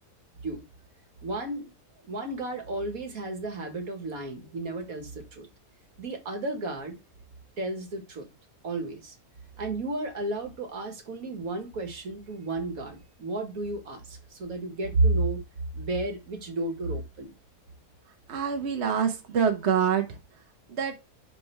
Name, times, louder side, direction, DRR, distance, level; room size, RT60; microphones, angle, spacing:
voice 1, 1.2-1.7 2.1-5.5 6.0-7.0 7.6-8.3 8.6-9.2 9.6-15.4 15.8-17.3, right 2 dB, 70° right, 2.0 m, -32 dB
voice 2, 18.3-20.2 20.7-20.9, right 7 dB, 50° right, 1.2 m, -26 dB
9.9 x 3.4 x 3.3 m
omnidirectional pair, 1.5 m